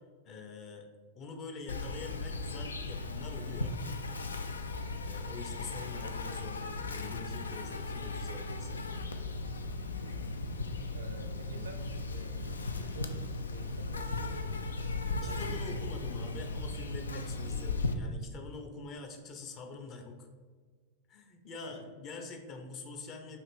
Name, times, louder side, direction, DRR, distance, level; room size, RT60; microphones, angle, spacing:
voice 1, 0.2-0.9 1.2-3.7 5.0-9.1 15.2-20.2 21.1-23.4, left 3 dB, 35° left, 3 dB, 0.7 m, -45 dB
Insect, 1.7-17.9, left 3 dB, 75° left, 0.3 m, -37 dB
voice 2, 10.0-10.6 10.9-15.9 21.6-22.3, right 2 dB, 75° right, 4 dB, 0.7 m, -50 dB
5.5 x 2.6 x 3.5 m, 1.5 s
figure-of-eight pair, 90°, 0 cm